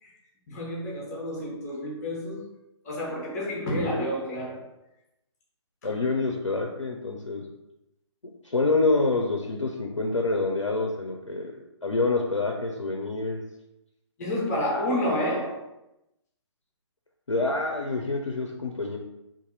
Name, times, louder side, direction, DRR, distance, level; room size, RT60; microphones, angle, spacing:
voice 1, 0.5-2.5 2.8-4.7 5.8-5.9 14.2-15.6, left 1 dB, 35° left, -3 dB, 0.9 m, -29 dB
voice 2, 5.8-7.4 8.4-13.4 17.3-19.0, left 3 dB, 85° left, 1 dB, 0.5 m, -27 dB
2.6 x 2.6 x 3.9 m, 0.90 s
figure-of-eight pair, 135°, 16 cm